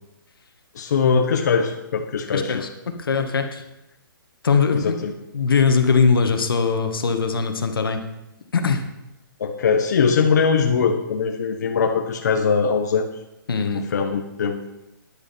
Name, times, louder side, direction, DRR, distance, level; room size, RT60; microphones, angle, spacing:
voice 1, 0.7-2.5 4.7-5.1 9.4-13.1 13.7-14.6, left 5 dB, 50° left, 3 dB, 1.1 m, -21 dB
voice 2, 2.3-3.6 4.4-5.0 5.3-8.0 8.5-8.9 13.5-13.8, left 5 dB, 85° left, 6 dB, 1.7 m, -21 dB
11.0 x 10.5 x 4.4 m, 0.91 s
hypercardioid pair, 170°, 12 cm